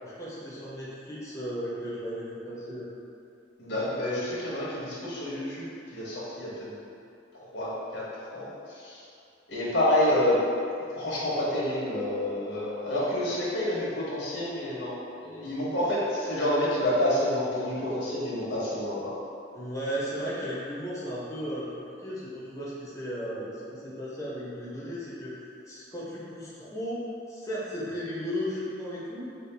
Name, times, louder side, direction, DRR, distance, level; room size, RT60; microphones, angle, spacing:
voice 1, 0.0-2.9 19.5-29.3, equal, 15° left, -9 dB, 0.6 m, -35 dB
voice 2, 3.6-6.7 7.4-8.0 8.3-8.5 8.8-9.0 9.5-10.4 10.9-14.9 15.2-19.1, left 1 dB, 75° left, -7 dB, 1.0 m, -28 dB
4.0 x 2.4 x 3.3 m, 2.5 s
head